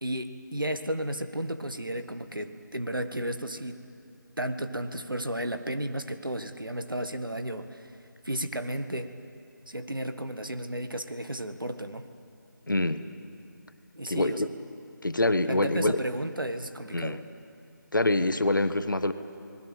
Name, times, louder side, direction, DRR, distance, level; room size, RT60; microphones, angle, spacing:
voice 1, 0.0-3.8 4.4-7.8 8.2-9.1 9.7-12.0 14.0-14.5 15.5-17.2, right 1 dB, 85° right, 8 dB, 1.7 m, -33 dB
voice 2, 12.7-13.0 14.1-14.5 15.0-16.0 16.9-17.2 17.9-19.1, left 2 dB, 70° left, 11 dB, 1.3 m, -25 dB
29.0 x 20.0 x 7.4 m, 2.5 s
figure-of-eight pair, 160°, 11 cm